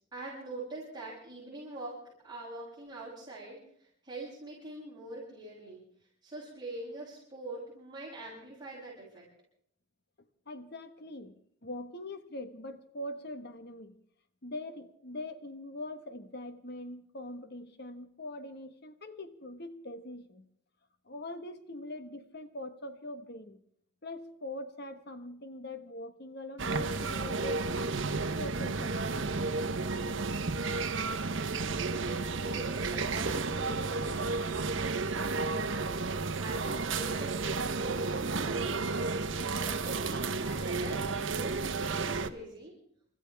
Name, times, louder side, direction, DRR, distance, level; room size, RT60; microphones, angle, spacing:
voice 1, 0.0-5.8 6.2-9.3 31.9-34.6 35.2-35.8 36.2-39.0 39.5-42.8, right 2 dB, 20° right, -8 dB, 7.6 m, -44 dB
voice 2, 10.5-14.0 14.4-20.5 21.1-23.6 24.0-27.6 28.4-29.3, left 1 dB, 55° left, 9 dB, 1.3 m, -42 dB
sound 1, 26.6-42.3, right 3 dB, 70° right, 1.0 m, -32 dB
29.0 x 14.0 x 3.5 m, 0.64 s
head